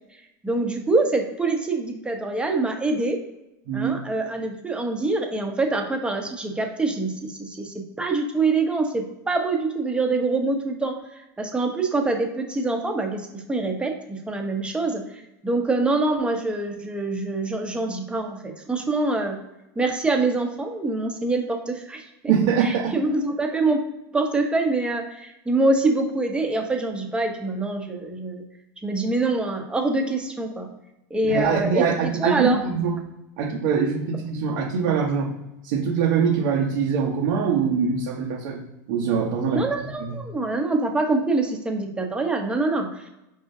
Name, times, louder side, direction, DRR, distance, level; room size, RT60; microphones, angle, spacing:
voice 1, 0.4-3.2 3.7-19.4 19.8-22.3 22.6-23.8 24.1-28.4 28.8-30.7 31.1-32.6 39.4-43.1, right 3 dB, 10° right, 3 dB, 0.8 m, -25 dB
voice 2, 3.7-4.0 22.3-22.9 31.2-33.0 33.4-35.3 35.6-38.6 38.9-39.6 40.0-40.2, right 6 dB, 75° right, -3 dB, 0.9 m, -23 dB
4.8 x 3.7 x 2.7 m, 0.90 s
supercardioid pair, 125°, 10 cm